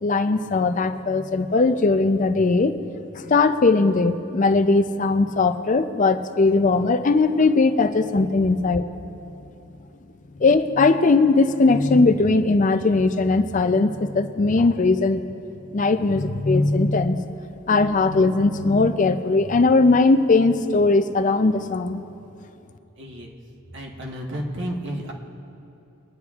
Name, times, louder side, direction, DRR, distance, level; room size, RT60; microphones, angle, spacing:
voice 1, 0.0-2.7 3.1-8.9 10.4-15.2 15.7-17.2 17.7-22.0, left 3 dB, 35° left, 10 dB, 0.4 m, -19 dB
voice 2, 23.0-23.4 23.7-25.1, equal, 55° right, 0 dB, 1.3 m, -32 dB
23.5 x 10.0 x 2.4 m, 2.8 s
head